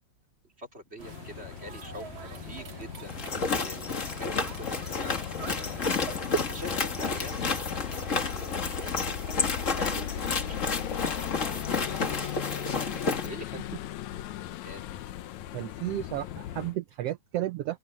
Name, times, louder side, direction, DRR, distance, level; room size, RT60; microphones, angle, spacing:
voice 1, 0.6-3.2 3.6-9.0 9.3-11.1 11.4-12.7 13.0-14.2 14.6-14.9, equal, 20° right, 3.2 m, -46 dB
sound 1, 1.0-16.8, left 12 dB, 70° left, 2.1 m, -38 dB
sound 2, 1.0-13.2, right 5 dB, 45° right, 2.3 m, -45 dB
sound 3, 3.1-13.3, left 4 dB, 35° left, 1.5 m, -31 dB
voice 2, 15.5-17.8, right 14 dB, 85° right, 1.3 m, -33 dB
open air
omnidirectional pair, 3.6 m